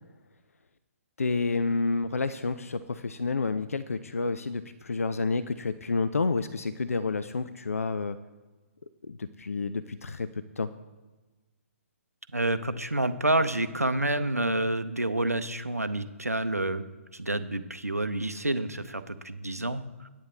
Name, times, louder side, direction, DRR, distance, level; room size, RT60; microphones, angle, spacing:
voice 1, 1.2-8.2 9.0-10.3 10.6-10.7, left 3 dB, 70° left, 12 dB, 0.4 m, -29 dB
voice 2, 12.3-16.8 17.1-20.1, right 1 dB, 85° right, 11 dB, 0.7 m, -28 dB
9.8 x 9.3 x 3.7 m, 1.2 s
figure-of-eight pair, 130°, 8 cm